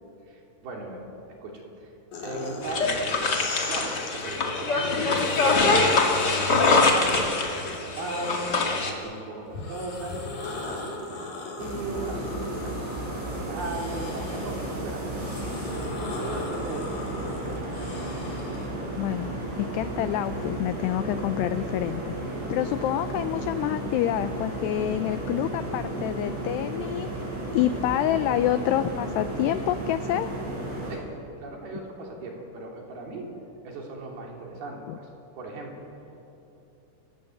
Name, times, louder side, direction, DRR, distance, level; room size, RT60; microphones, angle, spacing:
voice 1, 0.3-1.0 1.4-1.9 2.2-3.0 3.6-5.8 6.1-12.3 12.6-15.0 15.6-17.9 30.9-31.0 31.4-33.2 33.6-35.1 35.3-35.7, right 2 dB, 55° right, 0 dB, 4.9 m, -38 dB
sound 1, 2.1-4.4 5.0-9.1 9.5-18.7, left 3 dB, 45° left, 3.7 m, -37 dB
sound 2, 2.6-8.9, left 3 dB, 70° left, 0.9 m, -23 dB
sound 3, 11.6-31.0, right 1 dB, 80° right, 9.6 m, -33 dB
voice 2, 19.0-19.3 19.6-30.3 34.9-35.0, left 12 dB, 90° left, 11 dB, 2.4 m, -27 dB
29.5 x 17.5 x 7.9 m, 2.8 s
omnidirectional pair, 5.6 m